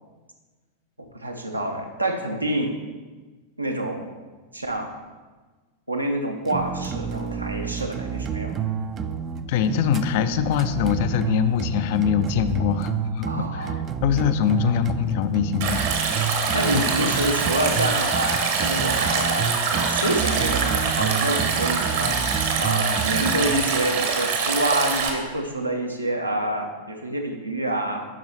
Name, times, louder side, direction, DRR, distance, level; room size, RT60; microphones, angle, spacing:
voice 1, 1.1-2.8 3.6-4.1 4.5-4.9 5.9-8.6 13.2-13.8 16.5-28.1, right 1 dB, 85° right, 2 dB, 0.8 m, -27 dB
sound 1, 6.5-23.7, right 7 dB, 25° right, 0.3 m, -30 dB
voice 2, 9.5-13.8 14.0-15.8 16.7-16.9, left 9 dB, 50° left, 11 dB, 0.4 m, -23 dB
Stream, 15.6-25.1, right 5 dB, 55° right, 1.0 m, -24 dB
8.8 x 5.4 x 3.1 m, 1.3 s
figure-of-eight pair, 90°, 0 cm